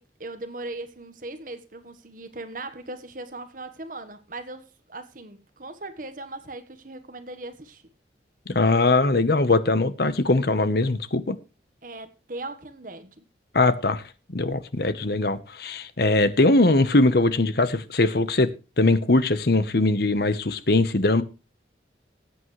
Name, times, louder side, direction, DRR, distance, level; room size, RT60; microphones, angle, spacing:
voice 1, 0.0-7.8 11.8-13.2, right 2 dB, 45° right, 1.3 m, -39 dB
voice 2, 8.5-11.3 13.5-14.0 14.3-18.5 18.8-21.2, left 2 dB, 55° left, 1.0 m, -21 dB
20.0 x 8.5 x 3.2 m
head